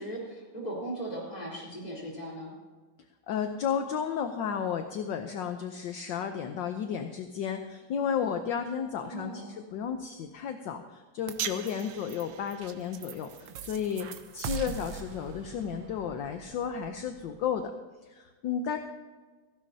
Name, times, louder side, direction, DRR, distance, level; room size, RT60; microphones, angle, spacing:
voice 1, 0.0-2.5 9.0-9.5, right 1 dB, 15° left, -4 dB, 3.8 m, -38 dB
voice 2, 3.3-17.7 18.0-18.8, left 7 dB, 65° left, 6 dB, 1.3 m, -33 dB
sound 1, 11.3-17.6, right 8 dB, 65° right, 1.4 m, -41 dB
16.5 x 15.5 x 2.8 m, 1.3 s
omnidirectional pair, 2.4 m